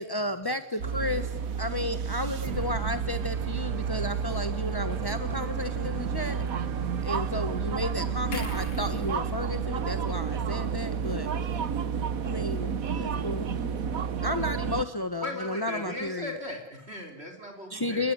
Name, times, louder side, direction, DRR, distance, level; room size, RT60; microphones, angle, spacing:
voice 1, 0.0-6.4 7.0-11.3 12.2-13.5 14.2-16.4 17.7-18.1, left 1 dB, 20° left, 9 dB, 0.6 m, -33 dB
sound 1, 0.8-14.8, right 7 dB, 45° right, 1.4 m, -31 dB
sound 2, 1.5-11.7, right 6 dB, 85° right, 2.4 m, -41 dB
sound 3, 8.3-11.7 12.0-12.2, left 2 dB, 60° left, 4.5 m, -42 dB
voice 2, 11.0-14.5, right 1 dB, ahead, 3 dB, 7.7 m, -56 dB
voice 3, 15.2-18.1, left 1 dB, 25° right, 4 dB, 4.0 m, -37 dB
29.0 x 20.5 x 9.6 m, 0.81 s
omnidirectional pair, 2.4 m